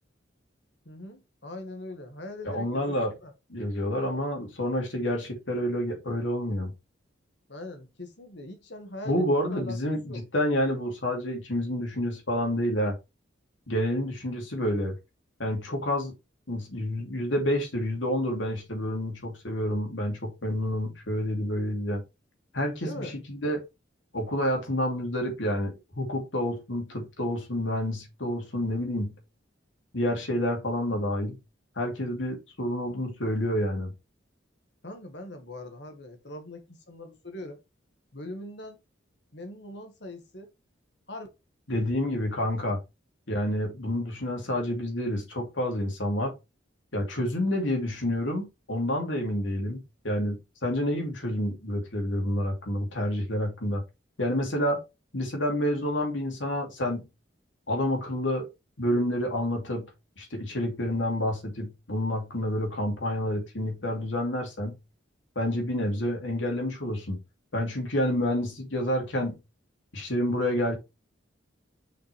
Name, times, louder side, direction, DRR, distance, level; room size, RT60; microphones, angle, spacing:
voice 1, 0.8-3.3 7.5-9.8 10.1-10.2 22.8-23.1 34.8-37.6 38.1-38.8 39.3-40.5 41.1-41.3, left 1 dB, 60° left, 1.8 m, -41 dB
voice 2, 2.4-3.2 3.5-6.7 9.0-13.0 13.7-15.0 15.4-16.1 16.5-22.0 22.5-23.6 24.1-29.1 29.9-31.4 31.8-33.9 41.7-42.8 43.3-46.4 46.9-53.8 54.2-54.8 55.1-57.0 57.7-58.5 58.8-59.9 60.2-64.8 65.3-67.2 67.5-69.3 69.9-70.8, left 1 dB, 80° left, 2.9 m, -29 dB
6.0 x 5.9 x 3.4 m
head